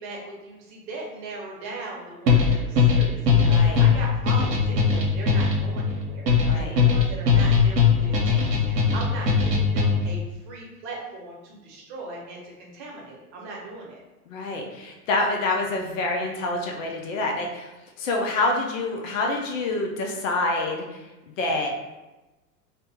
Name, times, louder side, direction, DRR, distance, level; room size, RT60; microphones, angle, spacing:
voice 1, 0.0-3.2 3.4-14.0, right 2 dB, 40° right, -2 dB, 0.9 m, -38 dB
sound 1, 2.3-10.2, left 5 dB, 80° right, 0.7 m, -20 dB
voice 2, 3.4-3.9 6.5-6.8 14.3-17.7 18.0-21.0 21.4-21.7, left 2 dB, 55° left, 1 dB, 0.6 m, -27 dB
2.7 x 2.1 x 3.3 m, 1.1 s
figure-of-eight pair, 90°, 48 cm